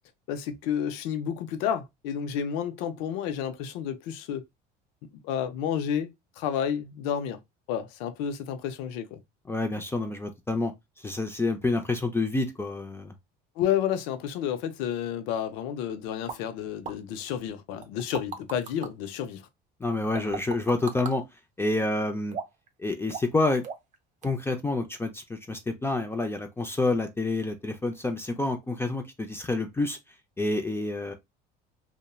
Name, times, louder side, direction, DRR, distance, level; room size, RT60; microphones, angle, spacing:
voice 1, 0.3-4.4 5.1-6.1 6.4-7.4 7.7-9.2 13.6-19.4, left 9 dB, 80° left, 0.5 m, -30 dB
voice 2, 9.5-10.7 11.0-13.1 19.8-21.2 21.6-22.4 22.8-23.6 24.2-30.0 30.4-31.1, left 2 dB, 10° left, 0.4 m, -28 dB
pop-flash-mouth-sounds, 16.3-16.4 16.8-17.0 17.8-18.9 20.1-21.2 22.3-22.7 23.1-23.4 23.6-23.9 24.2-24.3, right 6 dB, 35° right, 0.6 m, -36 dB
2.9 x 2.1 x 2.2 m
supercardioid pair, 100°, 21 cm